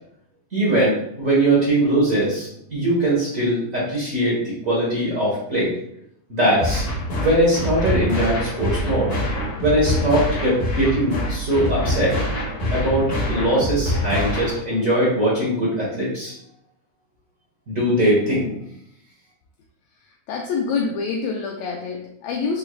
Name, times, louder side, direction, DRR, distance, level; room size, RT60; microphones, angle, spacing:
voice 1, 0.5-5.7 6.3-6.8 7.1-9.1 9.6-12.1 12.7-16.3 17.7-18.5, right 1 dB, 75° right, -7 dB, 0.7 m, -21 dB
sound 1, 6.6-14.6, equal, 65° left, 0.7 m, -25 dB
voice 2, 20.3-22.6, left 5 dB, 80° left, 0 dB, 1.6 m, -26 dB
6.1 x 2.4 x 3.1 m, 0.74 s
omnidirectional pair, 3.6 m